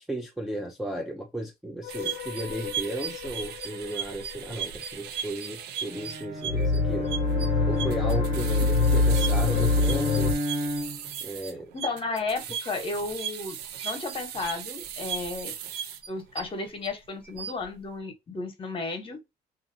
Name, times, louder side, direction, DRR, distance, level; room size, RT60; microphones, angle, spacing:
voice 1, 0.0-7.1 7.7-10.3 11.2-11.7, right 1 dB, ahead, 0.4 m, -35 dB
sound 1, 1.8-4.5 6.5-10.3, left 3 dB, 80° left, 0.5 m, -25 dB
sound 2, 1.9-16.9 17.3-17.6, right 8 dB, 75° right, 0.5 m, -37 dB
Bowed string instrument, 5.9-11.2, equal, 50° right, 0.9 m, -33 dB
voice 2, 11.7-13.6 13.8-15.5 16.1-19.2, left 3 dB, 30° left, 1.0 m, -33 dB
2.5 x 2.4 x 2.7 m
cardioid pair, 110°, 17 cm